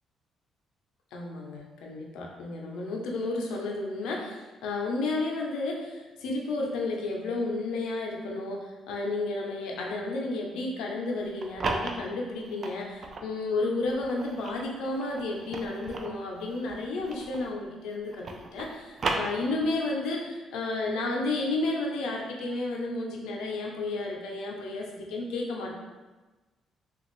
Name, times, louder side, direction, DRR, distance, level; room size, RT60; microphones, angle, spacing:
voice 1, 1.1-25.7, left 2 dB, 90° left, 0 dB, 0.6 m, -32 dB
sound 1, 11.2-13.3 13.9-17.6 17.9-19.9, right 3 dB, 50° right, 0.3 m, -35 dB
3.2 x 2.4 x 3.0 m, 1.2 s
cardioid pair, 90°, 0 cm